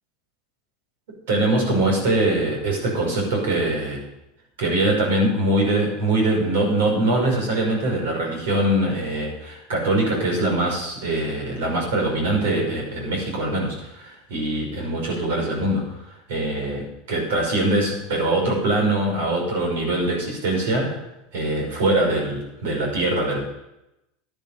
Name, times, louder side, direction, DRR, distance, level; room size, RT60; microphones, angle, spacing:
voice 1, 1.3-4.0 4.6-15.8 16.3-21.0 21.3-23.4, right 1 dB, 75° right, 1 dB, 5.5 m, -23 dB
11.5 x 11.0 x 5.6 m, 0.91 s
hypercardioid pair, 90°, 0 cm